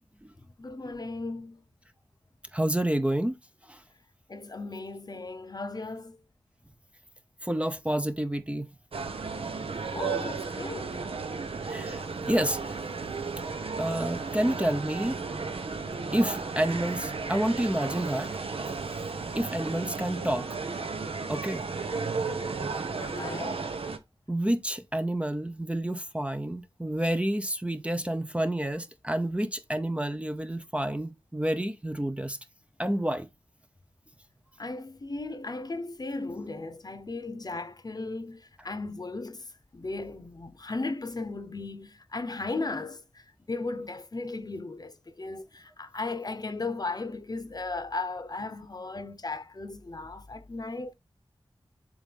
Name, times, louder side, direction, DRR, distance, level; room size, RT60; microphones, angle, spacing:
voice 1, 0.6-1.6 4.3-6.2 9.9-11.0 22.9-23.7 34.6-39.5 39.7-50.9, left 3 dB, 45° left, 0.8 m, -36 dB
voice 2, 2.5-3.4 3.6-3.8 7.4-8.7 11.7-12.8 13.8-15.2 16.1-18.3 19.4-20.5 21.3-21.6 24.3-32.4 32.8-33.3, right 1 dB, 15° right, 0.6 m, -29 dB
sound 1, 8.9-24.0, right 4 dB, 80° right, 0.9 m, -34 dB
7.7 x 2.7 x 5.2 m
wide cardioid pair, 85°, 9 cm